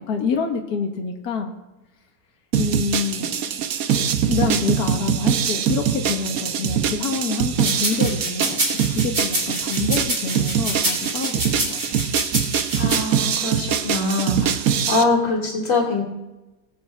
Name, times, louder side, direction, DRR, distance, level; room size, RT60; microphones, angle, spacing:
voice 1, 0.1-1.5 2.5-3.5 4.0-12.1, left 5 dB, 65° left, 2 dB, 2.0 m, -27 dB
sound 1, 2.5-15.0, right 8 dB, 65° right, 1.2 m, -23 dB
sound 2, 7.6-13.0, right 1 dB, 40° right, 3.7 m, -26 dB
voice 2, 12.8-16.0, left 3 dB, 50° left, -3 dB, 3.2 m, -23 dB
21.0 x 8.7 x 3.6 m, 1.0 s
omnidirectional pair, 1.7 m